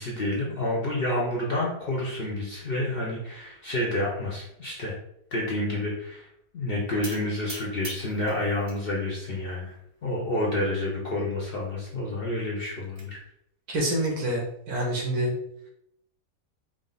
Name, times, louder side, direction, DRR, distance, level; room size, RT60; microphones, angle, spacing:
voice 1, 0.0-4.9 5.3-6.2 6.5-9.7 10.0-13.2, left 1 dB, 45° left, -3 dB, 0.8 m, -29 dB
sound 1, 7.0-8.8 9.2-9.8 10.4-10.5 10.8-10.9 11.2-11.3 12.4-13.1, right 2 dB, 40° right, 0.4 m, -43 dB
voice 2, 13.7-15.3, right 1 dB, 70° right, -1 dB, 1.6 m, -27 dB
4.9 x 2.1 x 4.0 m, 0.75 s
omnidirectional pair, 1.7 m